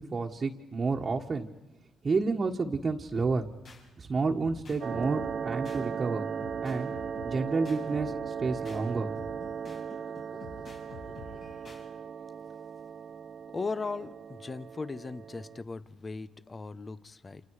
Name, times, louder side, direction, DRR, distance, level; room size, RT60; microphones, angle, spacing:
voice 1, 0.0-1.5 2.0-3.5 4.0-6.3 6.6-6.9 7.2-9.1, right 4 dB, 35° right, -1 dB, 1.6 m, -30 dB
sound 1, 3.1-3.8 4.4-5.8 6.4-8.8 9.2-11.8, left 3 dB, 60° left, 6.6 m, -48 dB
sound 2, 4.8-15.6, right 7 dB, 50° right, 0.8 m, -37 dB
voice 2, 13.5-17.4, left 4 dB, 30° left, 16 dB, 0.9 m, -38 dB
29.0 x 28.0 x 4.9 m, 1.0 s
cardioid pair, 90°, 0 cm